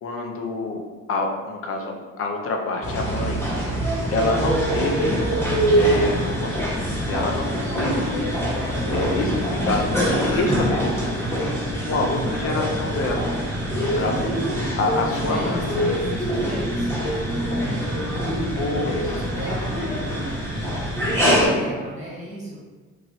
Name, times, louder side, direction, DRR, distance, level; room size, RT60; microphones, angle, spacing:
voice 1, 0.0-3.4 4.1-5.2 5.8-8.3 8.9-13.2 13.7-14.3 14.8-15.7 18.6-19.1 20.8-21.5, left 3 dB, 50° left, 2 dB, 0.5 m, -27 dB
sound 1, 2.8-21.5, equal, 10° left, 1.2 m, -24 dB
voice 2, 4.2-5.2 13.9-14.5 14.9-18.0 18.6-20.5 21.1-22.6, equal, 25° right, -5 dB, 1.3 m, -34 dB
3.1 x 2.4 x 2.7 m, 1.3 s
cardioid pair, 90°, 30 cm